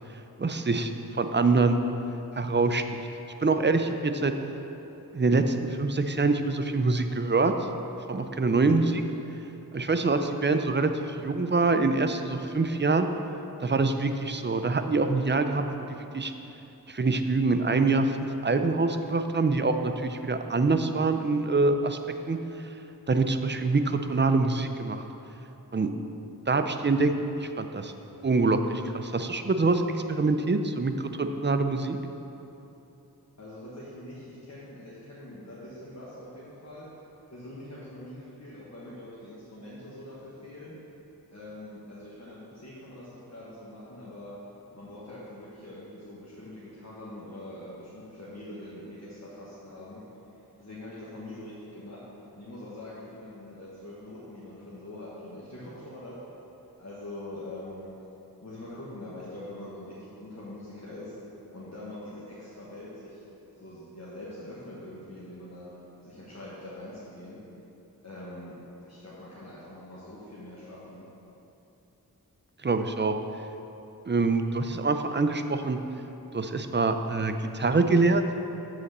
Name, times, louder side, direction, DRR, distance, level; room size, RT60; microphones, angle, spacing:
voice 1, 0.4-1.8 2.4-3.0 3.4-4.3 5.1-7.5 8.1-9.0 9.7-13.1 13.6-16.3 16.9-22.0 22.3-22.4 23.1-25.0 25.7-25.9 26.5-27.1 27.4-27.9 28.2-32.0 72.6-73.1 74.1-75.8 76.3-78.2, right 3 dB, 30° right, 7 dB, 0.5 m, -25 dB
voice 2, 33.4-36.9 37.3-40.7 41.3-44.3 44.7-50.0 50.3-52.0 52.3-56.2 56.8-57.9 58.4-61.2 61.5-63.2 63.5-65.7 66.0-67.4 68.0-68.5 68.8-71.0, left 1 dB, 45° left, -8 dB, 1.4 m, -43 dB
7.6 x 4.2 x 6.6 m, 3.0 s
wide cardioid pair, 45°, 38 cm